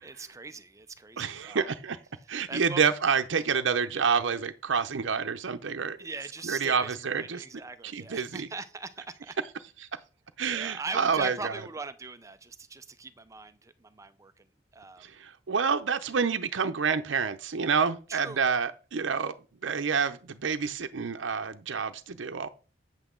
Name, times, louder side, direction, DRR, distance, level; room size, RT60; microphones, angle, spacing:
voice 1, 0.0-1.7 2.5-2.8 6.0-9.3 10.5-14.4 14.7-15.1 18.1-18.4, right 3 dB, 15° right, 0.5 m, -40 dB
voice 2, 1.2-2.0 2.3-6.0 6.4-7.4 7.8-8.5 9.8-9.9 10.4-11.5 15.0-19.3 19.6-22.5, right 6 dB, 85° right, 0.6 m, -28 dB
8.9 x 8.0 x 3.8 m
head